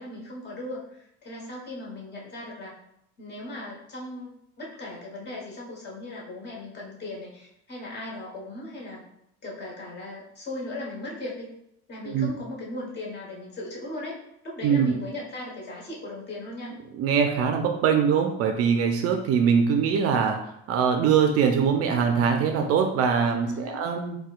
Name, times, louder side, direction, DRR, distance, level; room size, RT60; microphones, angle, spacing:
voice 1, 0.0-2.8 3.2-9.0 9.4-11.5 11.9-14.2 14.4-16.7 23.4-23.8, left 2 dB, 35° left, -3 dB, 1.2 m, -38 dB
voice 2, 14.6-14.9 16.9-20.4 20.7-24.2, right 6 dB, 50° right, 4 dB, 0.4 m, -22 dB
4.1 x 2.2 x 2.4 m, 0.76 s
supercardioid pair, 105°, 32 cm